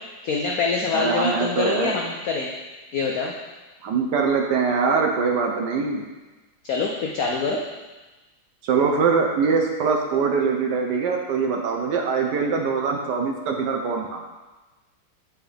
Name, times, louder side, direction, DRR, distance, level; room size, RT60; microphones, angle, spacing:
voice 1, 0.2-2.5 2.9-3.3 6.6-7.6, left 4 dB, 90° left, 0 dB, 0.7 m, -25 dB
voice 2, 0.9-1.9 3.8-6.1 8.6-14.2, right 5 dB, 70° right, 2 dB, 1.1 m, -23 dB
7.8 x 4.7 x 3.3 m, 1.2 s
omnidirectional pair, 2.2 m